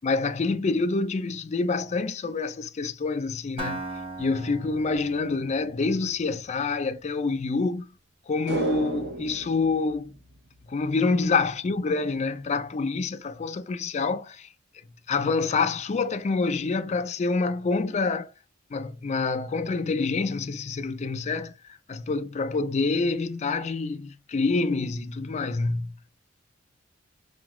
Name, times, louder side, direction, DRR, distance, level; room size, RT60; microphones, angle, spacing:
voice 1, 0.0-3.8 4.2-7.9 8.3-10.1 10.7-14.5 15.1-18.3 18.7-21.6 21.9-26.0, left 4 dB, 35° left, 0.4 m, -27 dB
Acoustic guitar, 3.6-7.4, right 2 dB, 30° right, 1.0 m, -39 dB
sound 1, 8.5-10.9 11.2-11.3, right 1 dB, 55° right, 0.7 m, -33 dB
4.6 x 2.2 x 3.0 m
head